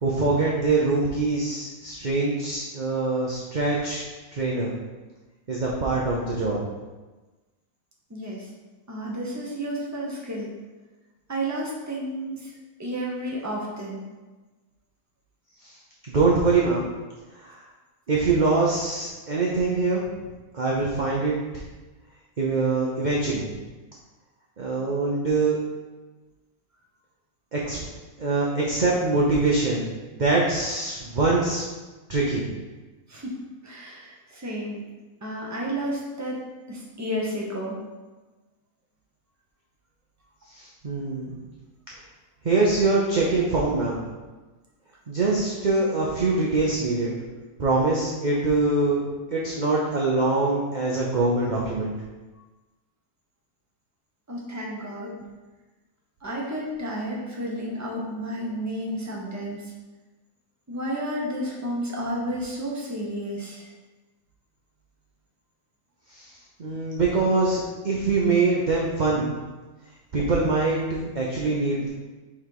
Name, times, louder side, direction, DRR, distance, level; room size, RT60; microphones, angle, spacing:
voice 1, 0.0-4.1 4.3-4.7 5.5-6.6 15.6-15.7 16.0-16.9 17.4-17.6 18.1-20.0 20.5-21.6 22.4-23.6 24.6-25.6 27.5-27.8 28.2-29.9 30.1-31.6 32.1-32.4 40.5-41.4 42.4-44.0 45.1-47.1 47.6-49.0 49.3-51.9 66.1-66.3 66.6-69.3 70.1-71.9, right 3 dB, 40° right, -4 dB, 0.7 m, -23 dB
voice 2, 8.1-8.5 8.9-10.5 11.3-12.5 12.8-14.1 33.1-34.8 35.2-36.4 36.7-37.8 54.3-55.2 56.2-59.6 60.7-63.7, equal, 15° right, -4 dB, 0.9 m, -31 dB
6.0 x 3.4 x 4.6 m, 1.2 s
omnidirectional pair, 1.6 m